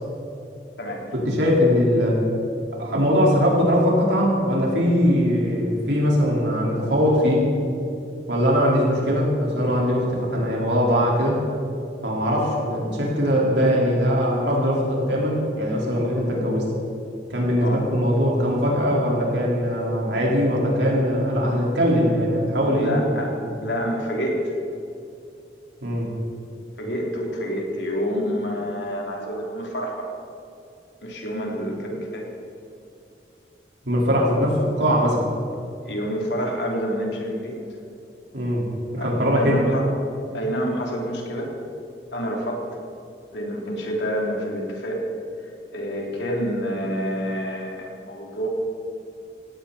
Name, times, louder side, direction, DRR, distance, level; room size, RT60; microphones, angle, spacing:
voice 1, 1.1-2.2 2.8-7.5 8.3-11.4 12.0-16.7 17.3-22.9 25.8-26.1 33.8-35.2 38.3-38.7 38.9-39.6, equal, 85° right, -4 dB, 4.8 m, -21 dB
voice 2, 22.7-23.3 23.6-24.5 26.8-30.1 31.0-32.3 35.8-37.5 39.0-39.1 39.3-39.9 40.3-41.5 42.1-42.6 43.3-45.0 45.7-48.5, equal, 80° left, -1 dB, 3.5 m, -28 dB
17.5 x 17.0 x 4.4 m, 2.6 s
head